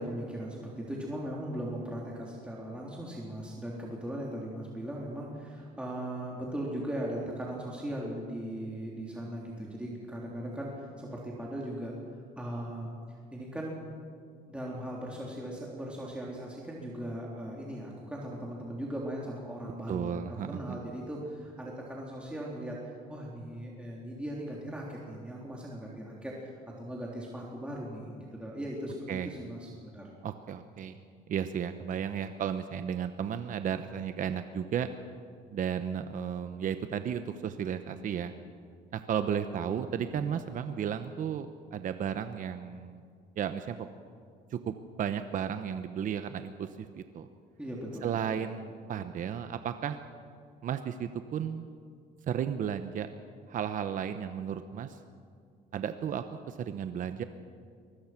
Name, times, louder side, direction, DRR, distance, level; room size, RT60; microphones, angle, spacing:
voice 1, 0.0-11.9 12.4-12.9 13.3-13.8 14.5-22.8 23.1-26.5 26.8-30.1 40.1-40.3 47.6-48.4, right 1 dB, 5° right, -4 dB, 3.7 m, -38 dB
voice 2, 19.9-20.8 29.1-29.3 30.2-31.0 31.3-34.9 35.5-38.3 38.9-43.0 43.4-43.9 44.5-47.3 48.0-50.0 50.6-51.7 52.3-53.1 53.5-55.0 55.7-57.2, right 8 dB, 50° right, 9 dB, 0.9 m, -34 dB
24.0 x 20.0 x 6.0 m, 2.2 s
cardioid pair, 110°, 17 cm